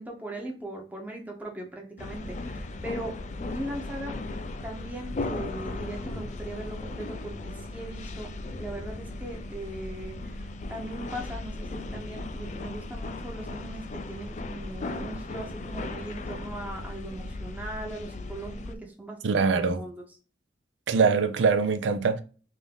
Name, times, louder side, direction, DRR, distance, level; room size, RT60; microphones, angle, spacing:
voice 1, 0.0-8.3 8.6-20.0, right 1 dB, 10° right, 0.8 m, -39 dB
sound 1, 2.0-18.7, left 2 dB, 40° left, 0.4 m, -37 dB
voice 2, 19.2-19.8 20.9-22.2, right 5 dB, 85° right, 0.5 m, -23 dB
3.6 x 2.6 x 3.4 m
head